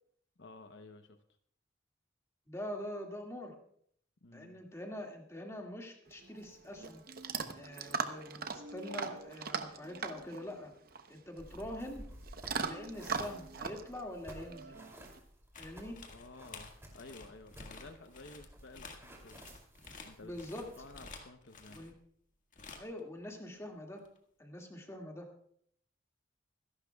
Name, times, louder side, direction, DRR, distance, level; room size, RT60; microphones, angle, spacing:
voice 1, 0.4-1.2 4.2-4.6 16.1-19.4 20.0-20.3 20.8-21.8, left 2 dB, 70° left, 7 dB, 0.8 m, -53 dB
voice 2, 2.5-3.6 4.3-7.0 7.5-10.7 11.1-12.0 12.6-14.8 15.6-16.0 20.2-20.7 21.7-21.9 22.8-24.0 24.4-25.3, left 1 dB, 15° left, 1 dB, 2.1 m, -44 dB
Chewing mastication / Dog, 6.1-15.2, right 5 dB, 50° right, 0.9 m, -41 dB
sound 1, 11.4-21.1, equal, 15° right, 2.8 m, -54 dB
sound 2, 15.5-22.0 22.5-23.0 24.0-24.2, left 4 dB, 45° left, 1.7 m, -51 dB
25.5 x 11.5 x 2.3 m, 0.63 s
head